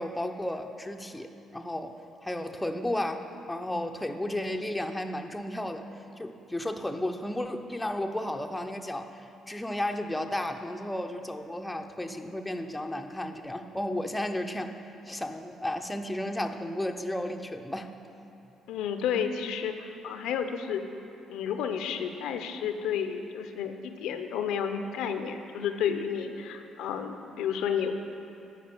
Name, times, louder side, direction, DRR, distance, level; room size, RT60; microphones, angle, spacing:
voice 1, 0.0-5.9 6.2-14.8 15.1-18.0, left 1 dB, 10° left, 5 dB, 0.6 m, -33 dB
voice 2, 18.7-20.9 21.3-27.9, left 7 dB, 85° left, 7 dB, 0.5 m, -31 dB
9.9 x 4.6 x 6.8 m, 2.8 s
cardioid pair, 80°, 0 cm